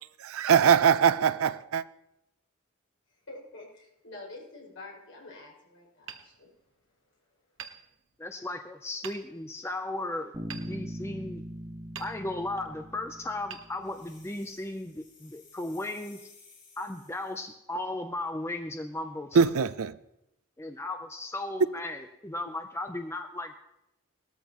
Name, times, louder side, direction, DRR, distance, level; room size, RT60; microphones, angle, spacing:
voice 1, 0.2-1.8 19.3-20.0, right 7 dB, 90° right, 0.5 m, -22 dB
voice 2, 3.3-6.5, left 2 dB, 70° left, 6.0 m, -47 dB
Hammer, 6.0-7.1 7.6-8.5 9.0-9.6 10.5-11.5 11.9-12.7 13.5-14.4, right 8 dB, 65° right, 1.0 m, -47 dB
voice 3, 8.2-11.4 12.0-16.2 16.8-19.4 20.6-23.5, left 2 dB, 10° left, 0.5 m, -36 dB
Bass guitar, 10.3-14.0, equal, 10° right, 1.5 m, -41 dB
sound 1, 13.8-17.5, left 4 dB, 35° left, 2.4 m, -57 dB
18.5 x 13.5 x 3.0 m
head